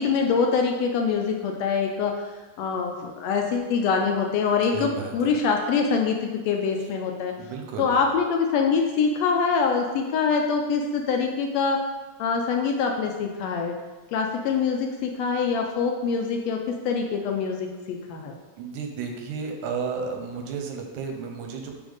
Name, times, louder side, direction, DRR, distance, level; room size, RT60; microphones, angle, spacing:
voice 1, 0.0-2.1 2.6-6.2 6.5-7.3 7.8-11.8 12.2-13.8 14.1-16.6 16.8-18.4, left 5 dB, 80° left, 2 dB, 1.5 m, -24 dB
voice 2, 4.7-5.4 6.8-6.9 7.2-8.1 18.6-21.8, right 5 dB, 85° right, 3 dB, 2.2 m, -33 dB
9.7 x 3.5 x 4.0 m, 1.3 s
omnidirectional pair, 3.5 m